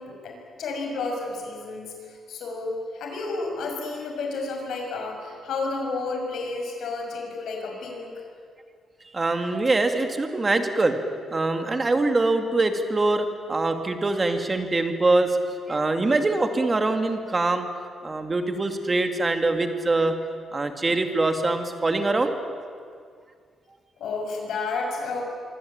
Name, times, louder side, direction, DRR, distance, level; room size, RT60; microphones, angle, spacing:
voice 1, 0.0-8.1 24.0-25.2, left 3 dB, 70° left, 2 dB, 6.5 m, -31 dB
voice 2, 9.1-10.9 11.3-15.4 15.7-17.7 18.0-20.1 20.5-22.4, right 2 dB, 20° right, 6 dB, 2.3 m, -23 dB
25.5 x 25.0 x 8.8 m, 2.1 s
cardioid pair, 165°, 0 cm